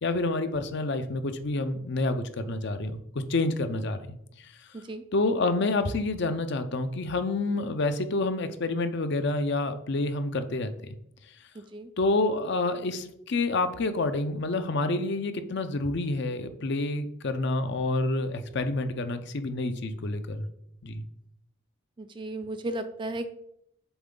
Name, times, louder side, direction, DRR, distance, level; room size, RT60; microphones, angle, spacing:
voice 1, 0.0-4.2 4.4-4.5 5.1-10.9 12.0-20.5 20.8-21.0, left 2 dB, 55° left, 9 dB, 0.5 m, -28 dB
voice 2, 11.5-11.9 22.0-23.3, right 1 dB, 20° right, 9 dB, 0.4 m, -35 dB
7.0 x 4.3 x 3.8 m, 0.74 s
head